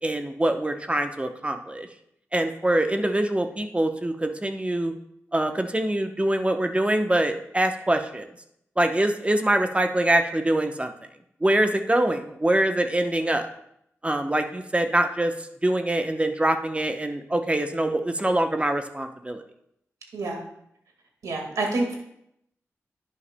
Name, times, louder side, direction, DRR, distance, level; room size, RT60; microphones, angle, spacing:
voice 1, 0.0-1.9 2.3-4.9 5.3-8.3 8.8-10.9 11.4-13.5 14.0-15.3 15.6-19.4, right 1 dB, 20° right, 6 dB, 0.8 m, -24 dB
voice 2, 21.2-22.0, right 2 dB, 90° right, 1 dB, 1.7 m, -27 dB
10.5 x 8.6 x 2.2 m, 0.75 s
cardioid pair, 45°, 6 cm